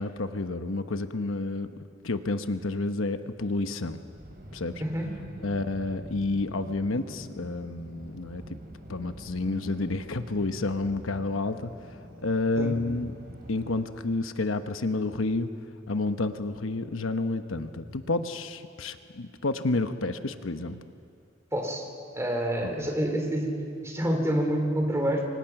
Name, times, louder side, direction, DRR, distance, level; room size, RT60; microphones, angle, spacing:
voice 1, 0.0-4.0 4.5-4.7 5.4-8.4 8.9-11.7 12.2-13.1 13.5-15.5 15.9-20.8 22.8-22.9, left 2 dB, 90° left, 9 dB, 1.0 m, -30 dB
sound 1, 4.1-13.8, equal, 50° right, 3.8 m, -46 dB
voice 2, 4.8-5.1 12.6-12.7 21.5-21.9 22.1-23.5 23.8-25.2, equal, 15° right, 2 dB, 3.3 m, -27 dB
29.0 x 24.5 x 6.0 m, 2.4 s
head